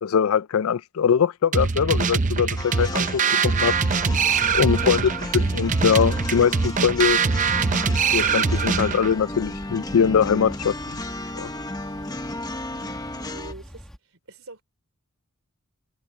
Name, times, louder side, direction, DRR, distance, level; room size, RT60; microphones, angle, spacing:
voice 1, 0.0-3.7 4.5-7.2 8.1-11.0 11.3-11.5, left 7 dB, 70° left, 0.4 m, -22 dB
sound 1, 1.5-9.1, right 5 dB, 35° right, 0.6 m, -23 dB
sound 2, 2.6-13.5, left 1 dB, 15° left, 1.1 m, -34 dB
sound 3, 3.9-14.0, equal, ahead, 1.8 m, -42 dB
voice 2, 4.7-5.3 12.7-13.9 14.3-14.6, right 2 dB, 65° right, 3.5 m, -44 dB
head